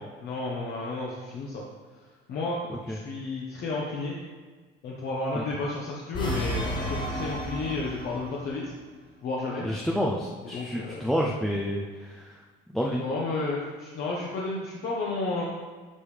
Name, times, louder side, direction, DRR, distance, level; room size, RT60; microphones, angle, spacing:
voice 1, 0.2-1.6 2.3-2.6 2.9-4.2 4.8-8.7 9.2-9.7 10.5-11.1 13.0-15.4, left 3 dB, 55° left, -4 dB, 1.1 m, -32 dB
sound 1, 6.1-8.4, equal, 25° left, 1.2 m, -32 dB
voice 2, 9.6-12.4 12.7-13.0, equal, ahead, -2 dB, 0.5 m, -29 dB
11.0 x 5.2 x 3.3 m, 1.4 s
cardioid pair, 155°, 19 cm